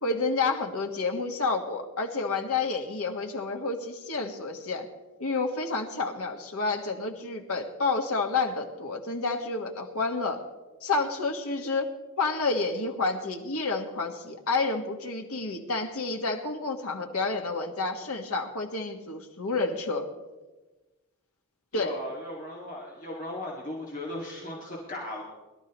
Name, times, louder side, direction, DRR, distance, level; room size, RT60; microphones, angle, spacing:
voice 1, 0.0-4.9 5.2-10.4 10.8-11.9 12.2-20.1 21.7-21.9, left 3 dB, 80° left, 3 dB, 1.6 m, -29 dB
voice 2, 21.7-25.2, left 1 dB, 35° left, -3 dB, 2.0 m, -37 dB
21.5 x 12.0 x 3.1 m, 1.2 s
head